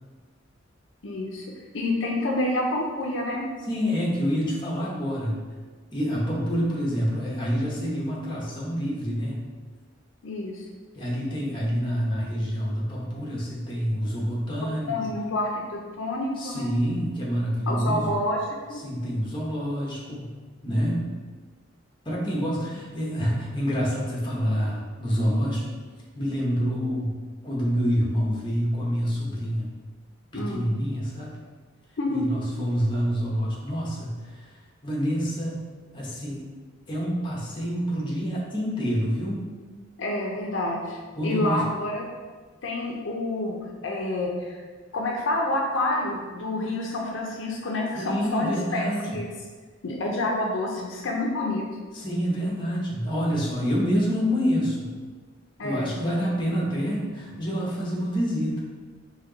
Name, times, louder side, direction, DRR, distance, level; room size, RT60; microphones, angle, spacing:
voice 1, 1.0-1.4 1.7-3.4 10.2-10.6 14.9-16.7 17.7-18.8 30.3-30.6 32.0-32.3 40.0-42.0 42.6-44.6 44.9-49.3 49.8-51.6 55.6-55.9, left 1 dB, 75° left, 0 dB, 0.6 m, -28 dB
voice 2, 3.7-5.4 5.9-9.4 10.9-15.1 16.4-18.1 18.8-20.3 20.6-21.1 22.0-25.7 26.1-27.2 27.4-29.7 30.3-31.4 32.1-34.4 34.8-35.6 35.9-36.4 36.9-39.4 41.2-41.6 47.9-49.1 51.9-54.9 55.6-58.6, equal, 25° left, -4 dB, 1.0 m, -27 dB
4.3 x 2.8 x 3.9 m, 1.4 s
head